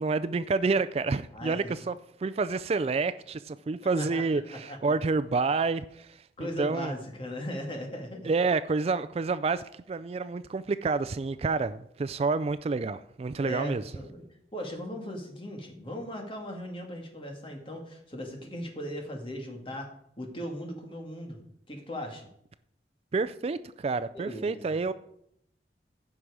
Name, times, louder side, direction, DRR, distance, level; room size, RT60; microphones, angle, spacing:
voice 1, 0.0-1.9 2.2-6.9 8.3-13.8 23.1-24.9, right 4 dB, 35° right, 0.3 m, -29 dB
voice 2, 1.3-1.7 4.0-4.8 6.4-8.3 13.4-14.2 14.5-19.9 20.2-21.4 21.7-22.3 24.1-24.9, equal, 30° left, 2.0 m, -38 dB
15.0 x 6.0 x 4.9 m
head